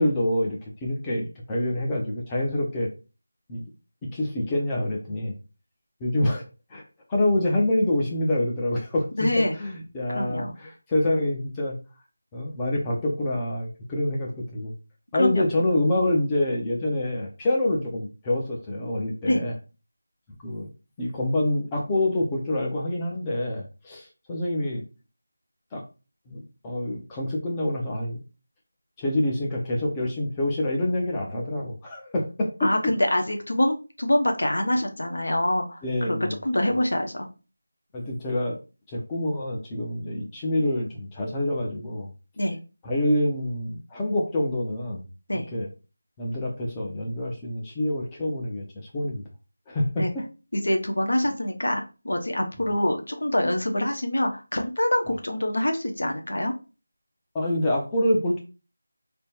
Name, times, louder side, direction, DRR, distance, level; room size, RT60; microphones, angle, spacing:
voice 1, 0.0-2.9 3.5-3.6 4.0-5.4 6.0-6.4 6.7-6.8 7.1-9.3 9.6-11.8 12.3-14.7 15.1-19.5 20.4-20.7 21.0-24.8 25.7-25.8 26.3-28.2 29.0-32.5 35.8-36.4 37.9-38.6 38.9-42.1 42.8-45.0 45.3-45.7 46.2-49.2 49.7-50.2 57.3-58.4, left 1 dB, 10° left, -2 dB, 0.5 m, -26 dB
voice 2, 9.2-9.5 10.1-10.5 15.1-15.4 19.2-19.4 32.6-36.2 36.4-37.3 42.4-42.6 45.3-45.5 50.0-50.1 50.5-56.5, left 1 dB, 90° left, 3 dB, 0.9 m, -25 dB
3.3 x 2.1 x 4.3 m, 0.32 s
figure-of-eight pair, 175°, 0 cm